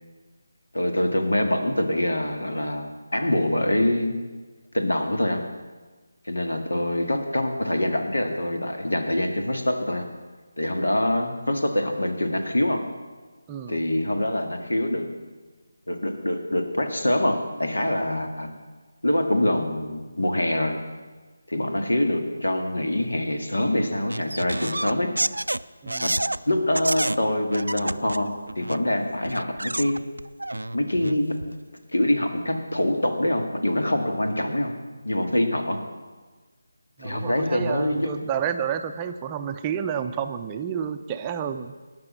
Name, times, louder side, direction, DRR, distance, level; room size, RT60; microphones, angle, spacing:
voice 1, 0.7-4.1 4.7-5.4 6.3-10.1 10.6-12.8 13.7-15.1 15.9-18.5 19.0-20.8 21.5-25.1 26.0-26.1 26.5-28.3 28.6-30.0 30.7-31.4 31.9-34.7 35.0-35.8 37.0-38.1, left 1 dB, 80° left, 5 dB, 2.0 m, -24 dB
sound 1, 24.1-26.4 26.7-27.2 27.5-28.8 29.2-31.6, right 1 dB, 90° right, 0.4 m, -29 dB
voice 2, 25.8-26.1 37.0-41.7, right 8 dB, 15° right, 6 dB, 0.5 m, -30 dB
18.5 x 6.2 x 7.4 m, 1.3 s
figure-of-eight pair, 160°, 0 cm